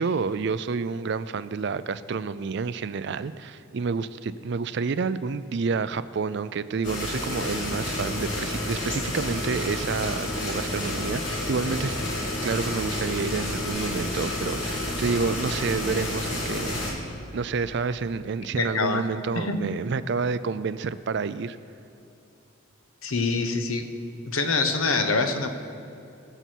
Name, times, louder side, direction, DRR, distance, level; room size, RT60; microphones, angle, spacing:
voice 1, 0.0-16.8 17.3-21.6, right 5 dB, 55° right, 14 dB, 0.4 m, -29 dB
sound 1, 6.8-16.9, left 1 dB, 60° left, 2.6 m, -30 dB
voice 2, 18.6-19.1 19.4-19.7 23.0-23.9 24.3-25.5, left 3 dB, 85° left, 7 dB, 1.0 m, -25 dB
20.0 x 6.9 x 4.6 m, 2.7 s
head